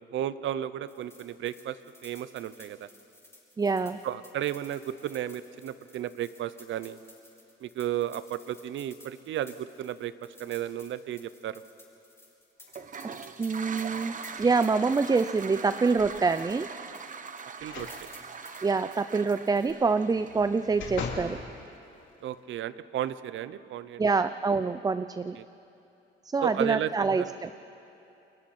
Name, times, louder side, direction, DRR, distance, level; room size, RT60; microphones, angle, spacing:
voice 1, 0.0-1.8 2.0-2.9 4.0-7.0 7.6-10.1 10.4-11.6 17.6-17.9 22.2-24.0 25.4-25.5 26.4-26.9 27.2-27.3, right 11 dB, 75° right, 15 dB, 0.7 m, -33 dB
sound 1, 0.8-16.7 16.9-19.7, left 2 dB, 10° left, 5.8 m, -55 dB
voice 2, 3.6-4.0 13.4-16.7 18.6-21.4 24.0-25.4 26.2-27.5, right 4 dB, 20° right, 13 dB, 0.4 m, -26 dB
Toilet flush, 12.7-21.6, right 5 dB, 40° right, 1.0 m, -42 dB
sound 2, 16.0-16.5 17.6-18.0 18.4-18.5 20.1-21.4 21.9-22.0, left 5 dB, 80° left, 2.7 m, -39 dB
29.5 x 21.5 x 4.3 m, 2.8 s
cardioid pair, 90°, 20 cm